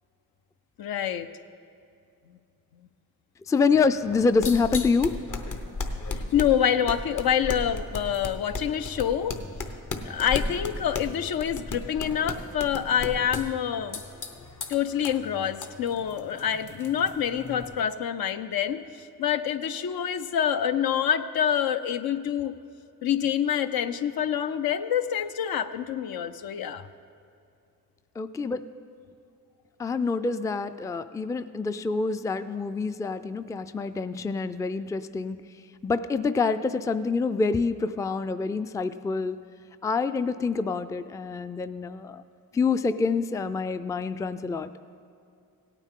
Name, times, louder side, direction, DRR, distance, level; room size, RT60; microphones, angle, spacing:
voice 1, 0.8-1.3 6.1-9.4 10.0-14.0 14.7-22.5 23.0-26.9, left 9 dB, 75° left, 10 dB, 0.6 m, -27 dB
voice 2, 3.5-5.1 28.2-28.7 29.8-35.4 35.8-39.4 39.8-42.2 42.5-44.7, left 4 dB, 10° left, 12 dB, 0.3 m, -26 dB
sound 1, 4.0-17.8, left 3 dB, 55° left, 1.0 m, -36 dB
17.0 x 9.1 x 3.7 m, 2.6 s
cardioid pair, 60°, 37 cm